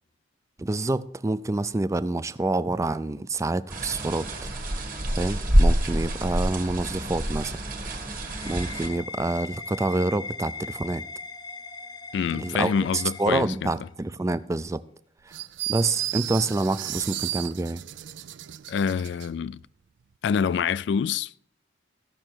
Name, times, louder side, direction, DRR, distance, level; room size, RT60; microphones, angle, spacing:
voice 1, 0.6-4.3 5.2-7.6 8.5-11.1 12.3-14.8 15.3-15.4 15.7-17.8, right 2 dB, 15° right, 0.4 m, -27 dB
sound 1, 3.7-8.9, equal, 50° right, 1.6 m, -26 dB
sound 2, 7.7-14.0, left 4 dB, 20° left, 0.9 m, -40 dB
voice 2, 12.1-13.7 18.7-19.6 20.2-21.5, left 6 dB, 65° left, 0.3 m, -26 dB
sound 3, 15.3-19.3, right 15 dB, 85° right, 0.4 m, -34 dB
15.5 x 6.4 x 4.5 m
head